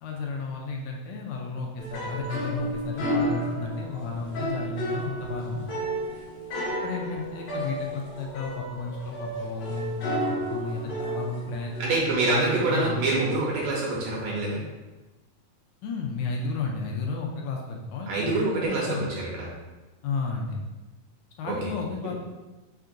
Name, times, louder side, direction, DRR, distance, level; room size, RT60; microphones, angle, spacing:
voice 1, 0.0-5.7 6.8-10.2 10.5-13.3 15.8-19.1 20.0-20.6 21.4-22.2, left 4 dB, 80° left, 0 dB, 1.8 m, -33 dB
sound 1, 1.8-12.5, right 1 dB, 60° left, 1.3 m, -32 dB
voice 2, 11.8-14.6 18.1-19.5 21.4-21.7, right 2 dB, 75° right, -5 dB, 2.2 m, -26 dB
5.7 x 3.5 x 2.5 m, 1.1 s
omnidirectional pair, 4.0 m